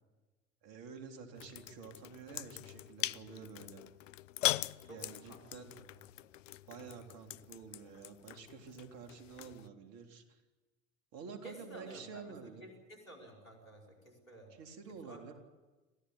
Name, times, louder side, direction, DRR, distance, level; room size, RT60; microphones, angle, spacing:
voice 1, 0.6-3.8 4.9-5.7 6.7-10.4 11.1-12.6 14.5-15.3, right 5 dB, 60° right, 5 dB, 3.6 m, -49 dB
sound 1, 1.4-9.7, left 15 dB, 75° left, 0.7 m, -41 dB
voice 2, 4.8-5.7 11.4-14.5 14.9-15.2, right 1 dB, 90° left, 1 dB, 5.3 m, -53 dB
27.5 x 15.0 x 9.7 m, 1.2 s
figure-of-eight pair, 70°, 39 cm